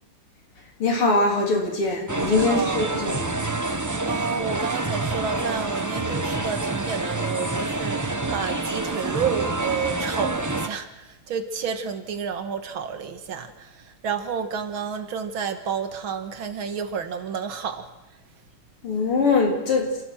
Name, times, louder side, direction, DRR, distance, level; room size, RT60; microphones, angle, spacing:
voice 1, 0.8-3.4 18.8-19.9, left 3 dB, 80° left, 0 dB, 4.7 m, -22 dB
sound 1, 2.1-10.7, right 2 dB, 30° right, 0.3 m, -27 dB
voice 2, 2.3-2.9 3.8-17.9, right 6 dB, 70° right, 8 dB, 2.2 m, -30 dB
28.0 x 16.5 x 6.2 m, 0.97 s
omnidirectional pair, 2.4 m